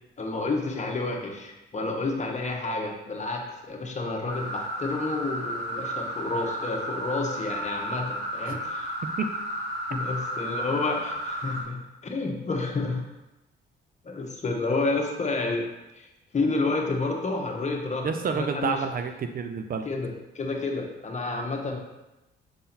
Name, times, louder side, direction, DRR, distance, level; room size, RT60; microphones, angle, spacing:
voice 1, 0.2-8.9 9.9-13.0 14.0-15.7 15.9-16.1 16.3-18.8 19.8-21.8, left 3 dB, 35° left, 1 dB, 1.2 m, -30 dB
sound 1, 4.3-11.6, equal, 90° right, 2.4 m, -33 dB
voice 2, 18.0-19.8, right 6 dB, 45° right, 7 dB, 0.6 m, -29 dB
7.0 x 3.7 x 4.3 m, 1.0 s
cardioid pair, 90°, 20 cm